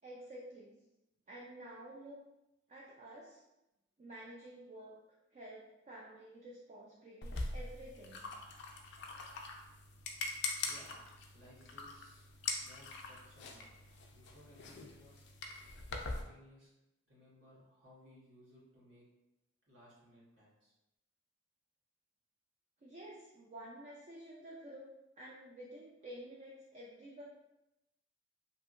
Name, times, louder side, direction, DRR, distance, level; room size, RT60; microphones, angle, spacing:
voice 1, 0.0-0.8 1.3-2.2 2.7-3.4 4.0-5.0 5.3-8.3 22.8-24.9 25.2-27.2, right 1 dB, 35° right, -4 dB, 0.4 m, -51 dB
sound 1, 7.2-16.2, left 3 dB, 60° left, 0.4 m, -43 dB
voice 2, 10.6-11.0 11.3-12.2 12.6-13.8 14.1-15.2 16.0-16.7 17.1-19.1 19.7-20.7, left 1 dB, 80° right, -8 dB, 1.4 m, -61 dB
2.7 x 2.7 x 2.4 m, 0.93 s
head